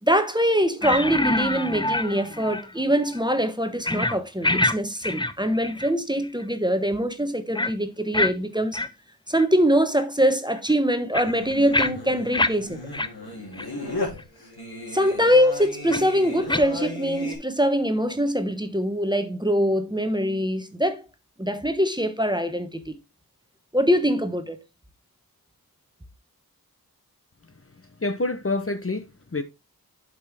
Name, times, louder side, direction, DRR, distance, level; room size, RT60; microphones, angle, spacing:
voice 1, 0.0-8.8 9.3-12.8 14.9-21.0 21.4-23.0 23.7-24.6, equal, 10° right, 1.1 m, -23 dB
sound 1, 0.8-2.7 3.0-3.2 3.8-4.2 4.4-4.8 5.0-5.9 6.2-6.4 7.6-7.7 8.1-8.3 8.7-8.9 9.4-9.5 10.0-10.1 10.6-12.5 12.9-13.1 13.5-13.7 14.2-14.3 15.9-16.0 16.5-16.7, left 2 dB, 15° left, 0.5 m, -25 dB
Singing, 11.2-17.4, left 2 dB, 85° left, 3.2 m, -35 dB
voice 2, 27.5-29.4, left 2 dB, 35° left, 0.8 m, -28 dB
7.9 x 5.4 x 3.4 m
wide cardioid pair, 45°, 37 cm